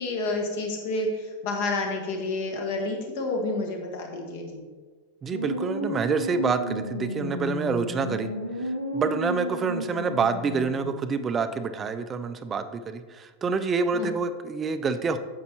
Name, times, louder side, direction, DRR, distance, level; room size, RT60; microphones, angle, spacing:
voice 1, 0.0-4.6 13.9-14.1, left 2 dB, 50° left, 2 dB, 1.5 m, -29 dB
voice 2, 5.2-8.3 8.6-15.2, right 5 dB, 20° right, 10 dB, 0.5 m, -27 dB
sound 1, 5.3-11.2, equal, 85° left, 1.0 m, -32 dB
9.3 x 7.4 x 2.9 m, 1.4 s
figure-of-eight pair, 90°, 0 cm